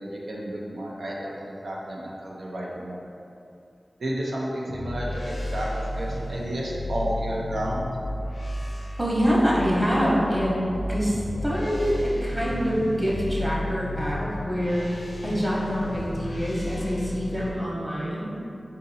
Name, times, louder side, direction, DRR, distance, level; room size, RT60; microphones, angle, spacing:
voice 1, 0.0-3.1 4.0-7.9, right 1 dB, 90° right, -4 dB, 0.6 m, -31 dB
sound 1, 4.7-17.5, left 1 dB, 65° left, 0.6 m, -33 dB
voice 2, 9.0-14.9 15.2-18.3, equal, 20° right, -6 dB, 1.0 m, -25 dB
3.8 x 2.7 x 4.0 m, 2.6 s
cardioid pair, 50°, 0 cm